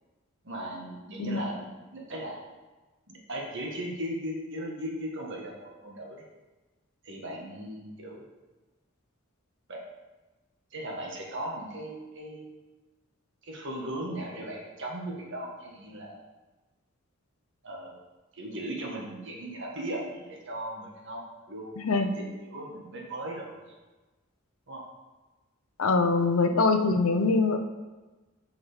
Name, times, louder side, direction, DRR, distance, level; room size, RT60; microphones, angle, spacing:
voice 1, 0.4-2.4 3.1-6.2 7.0-8.2 9.7-9.8 10.7-12.4 13.4-16.2 17.6-17.9 18.3-23.7 24.7-24.8 26.3-26.6, right 1 dB, 60° right, -1 dB, 1.6 m, -38 dB
voice 2, 21.8-22.2 25.8-27.6, left 3 dB, 85° left, 7 dB, 0.7 m, -23 dB
7.2 x 5.5 x 5.1 m, 1.2 s
head